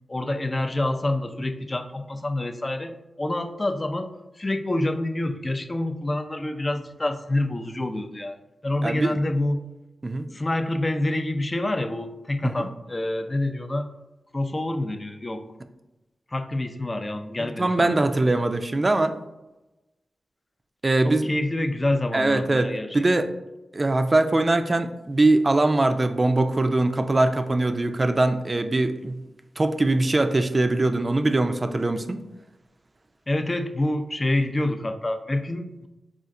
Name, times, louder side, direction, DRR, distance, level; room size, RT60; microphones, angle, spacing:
voice 1, 0.1-4.1 4.4-8.4 8.6-9.6 10.3-13.9 14.3-15.4 16.3-18.0 21.0-23.2 33.3-35.9, left 1 dB, 30° left, 7 dB, 0.4 m, -27 dB
voice 2, 8.8-9.1 10.0-10.3 12.4-12.7 17.4-19.2 20.8-21.3 22.1-22.7 22.9-23.3 23.7-29.2 29.6-32.2, right 2 dB, 35° right, 8 dB, 0.4 m, -22 dB
4.2 x 2.5 x 3.6 m, 1.0 s
cardioid pair, 50°, 0 cm